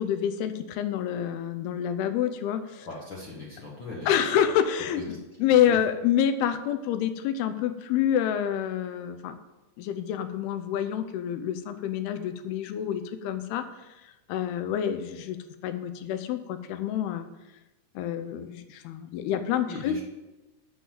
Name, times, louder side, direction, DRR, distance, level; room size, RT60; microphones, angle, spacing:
voice 1, 0.0-2.9 4.1-9.4 9.8-13.6 14.0-15.4 15.6-17.3 18.0-20.0, left 9 dB, 80° left, 8 dB, 2.7 m, -27 dB
voice 2, 2.8-4.3 4.9-5.0 5.7-5.8 19.7-20.0, left 3 dB, 60° left, -4 dB, 1.2 m, -39 dB
7.9 x 5.9 x 7.3 m, 1.1 s
omnidirectional pair, 4.6 m